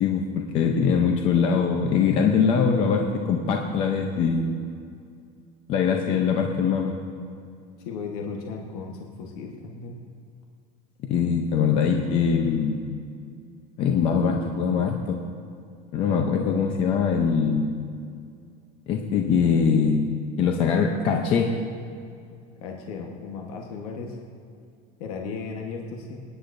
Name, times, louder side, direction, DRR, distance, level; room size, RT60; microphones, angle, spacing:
voice 1, 0.0-4.5 5.7-6.9 11.1-12.8 13.8-15.2 15.9-17.7 18.9-20.1 20.4-21.5, left 6 dB, 25° left, 2 dB, 0.6 m, -22 dB
voice 2, 7.8-10.0 16.5-16.7 22.6-24.2 25.0-26.2, left 5 dB, 70° left, 1 dB, 1.3 m, -35 dB
26.0 x 9.9 x 2.6 m, 2.3 s
supercardioid pair, 175°, 20 cm